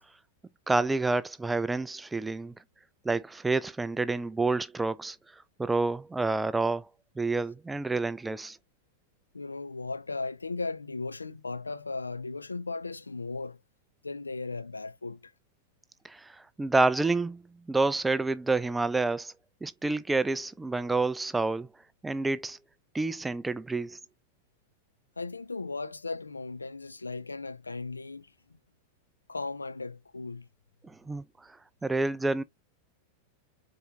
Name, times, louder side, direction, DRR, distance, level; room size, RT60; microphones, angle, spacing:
voice 1, 0.7-2.5 3.0-5.2 5.6-6.9 7.2-8.6 16.0-19.3 19.6-21.7 22.0-22.6 22.9-24.0 30.8-31.6 31.8-32.4, right 3 dB, 10° right, 0.4 m, -28 dB
voice 2, 9.3-13.6 14.0-15.3 25.2-28.3 29.3-30.5, left 3 dB, 80° left, 0.4 m, -36 dB
4.3 x 4.2 x 2.7 m
figure-of-eight pair, 90°, 0 cm